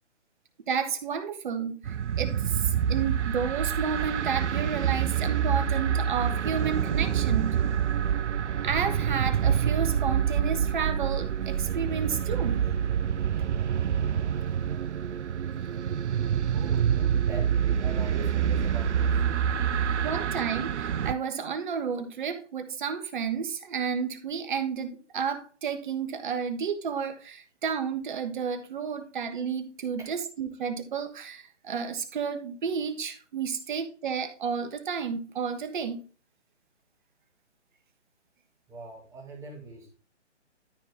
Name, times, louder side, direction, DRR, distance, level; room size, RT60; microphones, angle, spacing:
voice 1, 0.7-7.6 8.6-12.6 20.0-36.0, right 6 dB, 45° right, 1.5 m, -31 dB
sound 1, 1.8-21.1, right 8 dB, 75° right, 0.6 m, -27 dB
voice 2, 16.5-19.3 30.0-30.2 38.7-40.0, right 3 dB, 10° right, 2.1 m, -43 dB
13.0 x 4.4 x 3.6 m
figure-of-eight pair, 145°, 36 cm